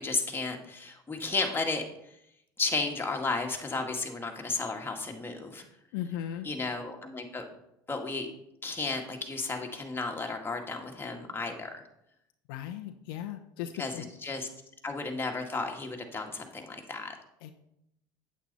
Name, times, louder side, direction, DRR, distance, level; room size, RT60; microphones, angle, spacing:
voice 1, 0.0-2.2 2.6-5.6 6.4-7.4 7.9-8.3 8.6-11.8 13.8-13.9 14.2-14.5 14.8-17.1, left 3 dB, 20° left, 2 dB, 1.9 m, -33 dB
voice 2, 5.9-6.5 12.5-14.1 17.4-17.5, left 11 dB, 75° left, 6 dB, 0.7 m, -37 dB
8.5 x 8.4 x 4.1 m, 0.79 s
hypercardioid pair, 80°, 12 cm